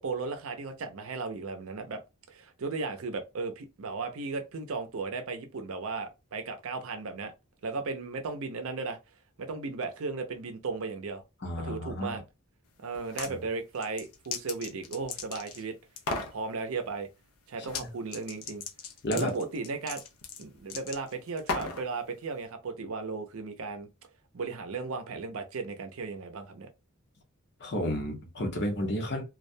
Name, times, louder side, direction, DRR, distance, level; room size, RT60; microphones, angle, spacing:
voice 1, 0.0-2.0 2.3-7.3 7.6-9.0 9.4-11.2 11.6-12.2 12.8-15.8 16.3-17.1 17.5-18.6 19.1-20.0 20.4-23.9 24.3-26.7, right 4 dB, 65° right, 0.5 m, -35 dB
voice 2, 11.4-12.2 13.3-13.4 19.0-19.3 27.6-29.2, equal, 50° left, 0.8 m, -31 dB
sound 1, 12.9-13.3 13.7-15.6 16.0-16.3 17.6-17.9 18.1-21.9, left 4 dB, 80° left, 0.5 m, -36 dB
2.3 x 2.1 x 2.6 m
head